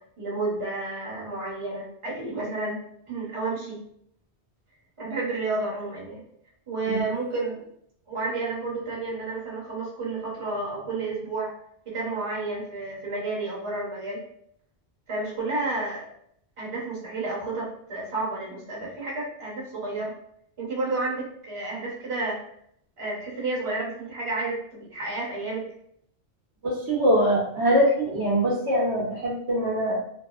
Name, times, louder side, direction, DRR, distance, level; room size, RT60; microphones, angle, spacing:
voice 1, 0.2-2.8 3.1-3.8 5.0-6.2 6.7-7.6 8.1-11.5 11.9-14.2 15.1-16.1 16.6-20.1 20.6-22.4 23.0-25.7, right 3 dB, 30° right, -6 dB, 0.8 m, -31 dB
voice 2, 26.6-30.0, equal, 75° right, -3 dB, 1.0 m, -23 dB
2.8 x 2.0 x 2.3 m, 0.70 s
omnidirectional pair, 1.1 m